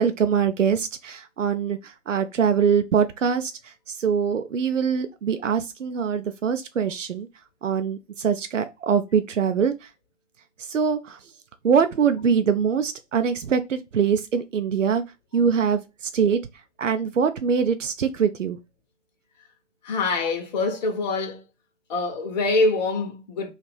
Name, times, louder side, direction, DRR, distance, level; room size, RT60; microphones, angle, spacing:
voice 1, 0.0-7.3 7.6-9.9 10.6-11.3 11.6-15.0 15.3-16.4 16.8-18.6, right 7 dB, 85° right, 0.5 m, -23 dB
voice 2, 19.8-21.4 21.9-23.5, left 3 dB, 35° left, 0.7 m, -24 dB
2.8 x 2.4 x 3.1 m
figure-of-eight pair, 130°, 37 cm